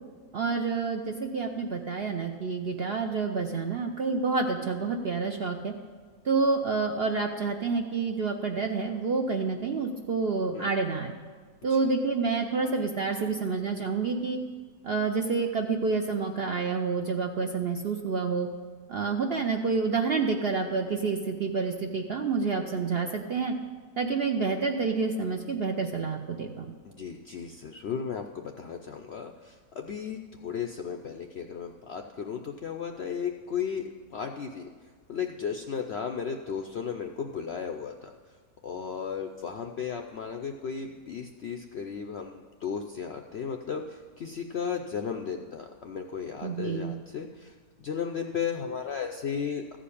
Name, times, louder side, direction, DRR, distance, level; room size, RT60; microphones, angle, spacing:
voice 1, 0.3-5.7 6.2-11.1 11.6-14.4 14.8-18.5 18.9-23.5 24.0-26.7 46.4-46.9, right 4 dB, 60° right, 3 dB, 0.6 m, -28 dB
voice 2, 26.8-34.7 35.1-38.1 38.6-49.8, left 7 dB, 65° left, 4 dB, 0.6 m, -35 dB
14.5 x 5.1 x 8.4 m, 1.6 s
omnidirectional pair, 1.7 m